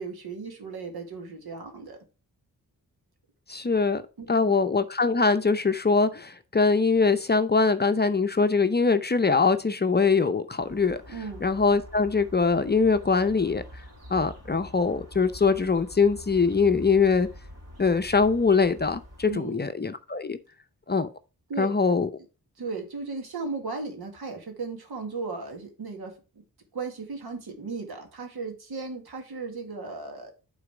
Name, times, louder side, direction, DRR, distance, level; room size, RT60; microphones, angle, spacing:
voice 1, 0.0-2.0 4.2-4.5 11.1-11.4 19.3-19.6 21.5-21.7 22.6-26.4 26.7-30.3, right 4 dB, 80° right, 2.1 m, -36 dB
voice 2, 3.5-4.0 4.3-11.0 11.4-13.6 14.1-17.3 17.8-20.4 20.9-21.1 21.6-22.1, left 4 dB, 25° left, 0.6 m, -23 dB
sound 1, 10.6-19.4, equal, 45° right, 3.7 m, -45 dB
8.6 x 4.0 x 4.9 m
cardioid pair, 75°, 37 cm